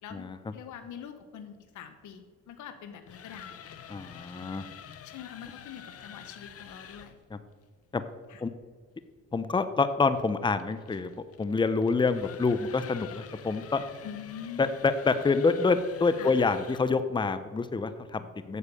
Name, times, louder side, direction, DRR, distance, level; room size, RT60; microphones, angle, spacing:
voice 1, 0.0-3.6 5.0-7.2 8.3-8.4 14.0-14.7 16.2-16.3, left 8 dB, 75° left, 9 dB, 1.0 m, -44 dB
sound 1, 2.9-7.2 9.8-17.0, left 8 dB, 50° left, 0.8 m, -48 dB
voice 2, 3.9-4.7 7.3-7.4 7.9-8.0 8.4-8.5 9.3-11.1 11.4-13.8 14.6-18.6, left 4 dB, 15° left, 12 dB, 0.6 m, -27 dB
8.3 x 7.1 x 6.9 m, 1.5 s
cardioid pair, 90°, 30 cm